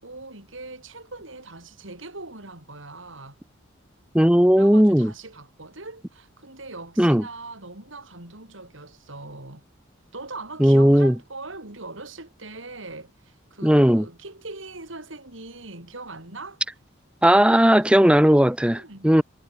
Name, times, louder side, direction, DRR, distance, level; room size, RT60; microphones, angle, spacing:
voice 1, 0.0-3.4 4.6-9.6 10.1-16.6 17.5-18.0 18.7-19.2, right 3 dB, 80° right, 4.8 m, -41 dB
voice 2, 4.1-5.1 7.0-7.2 10.6-11.1 13.6-14.0 17.2-19.2, equal, 5° right, 0.8 m, -16 dB
head